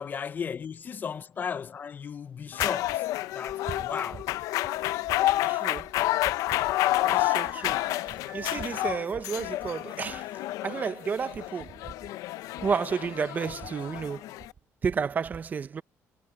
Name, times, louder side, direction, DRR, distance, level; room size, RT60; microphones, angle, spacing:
voice 1, 0.0-4.3, left 6 dB, 35° left, 0.5 m, -35 dB
sound 1, 2.5-14.5, left 16 dB, 85° left, 0.5 m, -29 dB
voice 2, 5.5-5.9 7.0-10.3 10.6-11.8 12.6-14.2 14.8-15.8, right 6 dB, 30° right, 0.7 m, -31 dB
cardioid pair, 140°, 6 cm